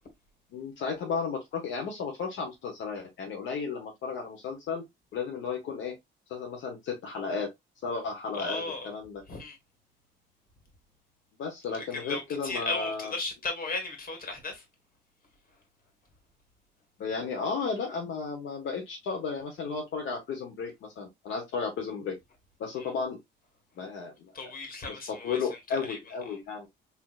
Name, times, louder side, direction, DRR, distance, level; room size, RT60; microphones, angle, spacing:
voice 1, 0.5-4.8 5.1-5.9 6.3-7.5 7.8-9.2 11.4-13.1 17.0-22.1 22.6-23.2 23.8-24.3 24.9-26.7, left 5 dB, 75° left, 0.9 m, -34 dB
voice 2, 8.3-8.9 9.3-9.6 11.9-14.6 22.8-22.9 24.3-25.6 25.9-26.0 26.3-26.4, left 3 dB, 45° left, 1.7 m, -35 dB
4.2 x 2.8 x 2.4 m
cardioid pair, 90°, 20 cm